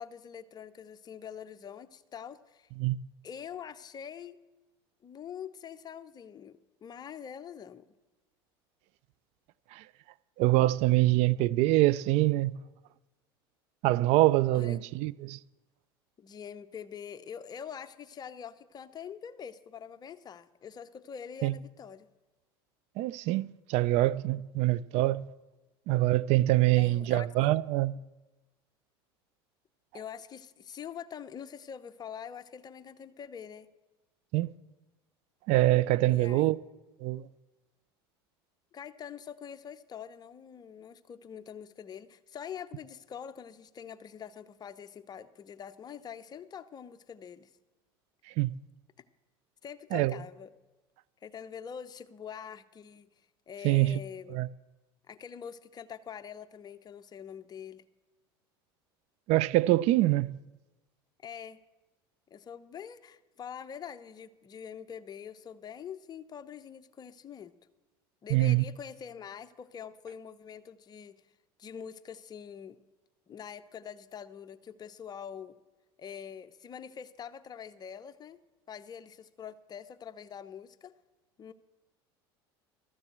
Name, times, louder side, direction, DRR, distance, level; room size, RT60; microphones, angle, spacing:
voice 1, 0.0-2.7 3.2-4.4 5.0-7.9 14.5-14.8 16.2-22.1 26.8-27.3 29.9-33.7 36.1-36.5 38.7-47.5 49.6-50.5 51.2-53.1 53.5-54.4 55.1-57.8 61.2-61.6 62.3-67.5 68.2-71.1 71.6-72.8 73.3-75.6 76.0-78.4 78.7-80.9 81.4-81.5, left 8 dB, 30° left, 0.8 m, -44 dB
voice 2, 10.4-12.5 13.8-15.4 21.4-21.5 23.0-25.3 25.9-28.0 34.3-34.5 35.5-36.6 37.0-37.3 48.4-48.6 49.9-50.2 53.6-54.0 54.3-54.5 59.3-60.4 68.3-68.6, right 17 dB, 60° right, 0.4 m, -25 dB
13.5 x 7.3 x 8.0 m
hypercardioid pair, 90°, 13 cm